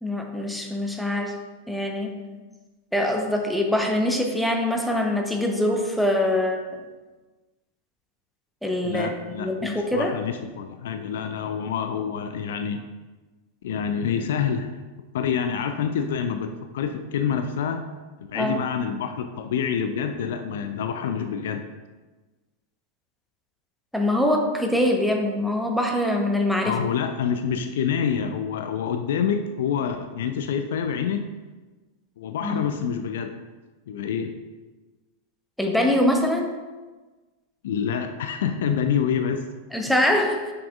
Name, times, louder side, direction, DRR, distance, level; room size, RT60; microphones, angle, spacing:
voice 1, 0.0-1.3 1.7-2.2 2.9-6.6 8.6-10.1 18.3-18.6 23.9-26.8 32.4-32.7 35.6-36.5 39.7-40.5, left 1 dB, ahead, 2 dB, 0.9 m, -23 dB
voice 2, 8.8-12.8 13.6-14.7 15.1-17.8 18.3-21.6 26.6-31.3 32.2-33.4 33.9-34.3 37.6-39.4, left 7 dB, 60° left, 7 dB, 0.4 m, -27 dB
7.9 x 6.0 x 2.4 m, 1.3 s
figure-of-eight pair, 90°, 0 cm